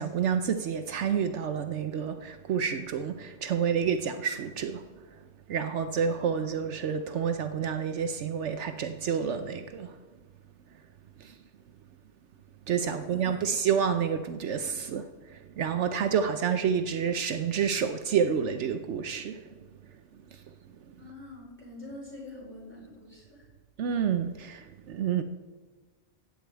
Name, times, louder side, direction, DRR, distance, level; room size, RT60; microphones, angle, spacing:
voice 1, 0.0-4.9 5.5-10.0 11.2-11.4 12.7-19.7 20.3-20.4 20.9-21.0 23.8-25.2, right 7 dB, 75° right, 1.0 m, -29 dB
voice 2, 12.8-13.4 21.0-23.5, left 2 dB, 10° left, 4.5 m, -46 dB
14.5 x 5.6 x 8.8 m
omnidirectional pair, 1.2 m